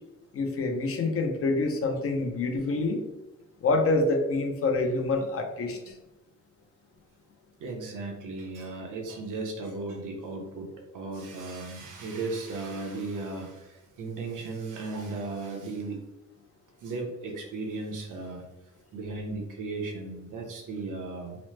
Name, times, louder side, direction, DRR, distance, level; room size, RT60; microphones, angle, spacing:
voice 1, 0.3-3.0 3.6-6.0, left 3 dB, 45° left, 4 dB, 0.5 m, -27 dB
voice 2, 7.6-10.7 10.9-16.0 16.8-18.4 18.9-21.4, right 3 dB, 75° right, 1 dB, 0.8 m, -36 dB
3.0 x 2.0 x 3.1 m, 1.0 s
cardioid pair, 110°, 31 cm